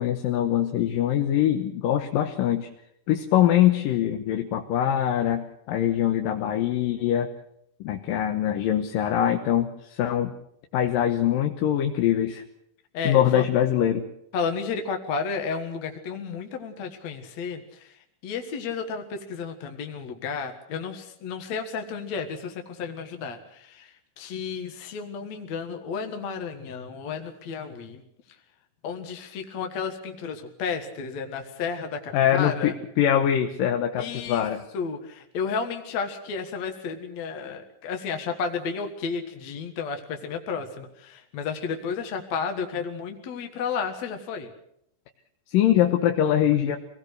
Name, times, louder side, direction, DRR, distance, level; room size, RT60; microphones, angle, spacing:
voice 1, 0.0-2.7 3.1-7.3 7.8-10.3 10.7-12.4 13.0-14.1 32.1-34.6 45.5-46.8, left 11 dB, 85° left, 4 dB, 2.9 m, -23 dB
voice 2, 12.9-13.5 14.3-17.9 18.2-28.0 28.8-32.7 34.0-34.4 34.7-44.5, left 5 dB, 60° left, 4 dB, 2.8 m, -32 dB
25.5 x 18.5 x 6.6 m, 0.74 s
omnidirectional pair, 3.9 m